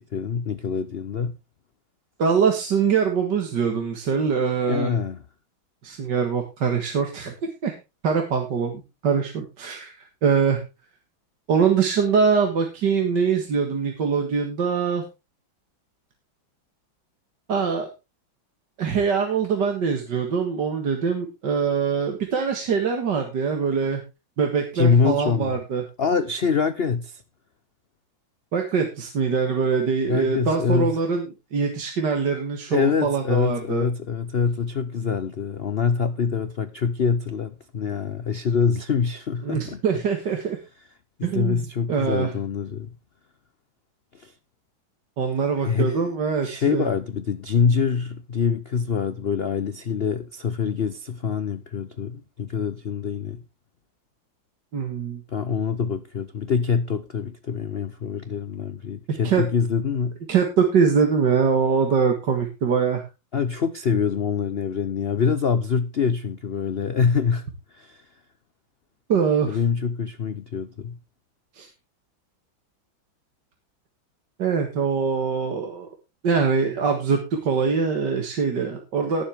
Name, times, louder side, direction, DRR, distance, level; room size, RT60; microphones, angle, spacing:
voice 1, 0.0-1.4 4.7-5.2 24.7-25.6 26.0-27.2 30.1-31.0 32.7-39.8 41.2-42.9 44.1-44.3 45.6-46.1 46.4-53.4 55.3-60.2 63.3-68.0 69.5-71.0, left 6 dB, 80° left, 0.5 m, -25 dB
voice 2, 2.2-4.9 5.8-7.3 7.6-7.7 8.0-10.6 11.5-15.0 17.5-17.9 18.8-24.0 24.4-25.8 28.5-33.9 39.4-40.6 41.2-41.6 41.9-42.3 45.2-46.9 54.7-55.2 59.2-59.4 60.3-63.1 69.1-69.6 71.6-71.7 74.4-75.9 76.2-79.2, right 6 dB, 60° right, 2.2 m, -23 dB
18.5 x 7.4 x 3.5 m
omnidirectional pair, 2.2 m